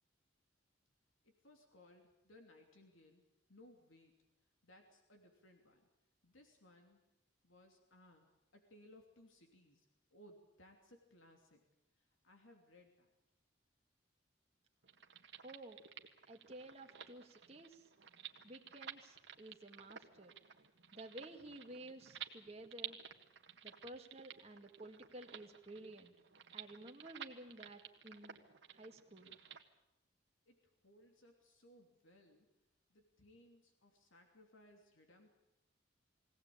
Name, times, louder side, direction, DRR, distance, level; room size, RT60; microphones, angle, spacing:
voice 1, 1.2-3.2 3.5-4.1 4.6-5.9 6.2-7.0 7.4-11.6 12.0-13.1 30.5-32.5 32.9-35.3, left 1 dB, 85° left, 3 dB, 3.0 m, -64 dB
sound 1, 14.8-29.6, right 9 dB, 65° right, 1.7 m, -53 dB
voice 2, 15.4-15.8 16.3-17.9 18.4-20.4 20.9-23.0 23.6-26.1 26.5-28.4 28.7-29.4, right 1 dB, 30° right, 2 dB, 2.1 m, -53 dB
22.5 x 17.5 x 8.7 m, 0.88 s
head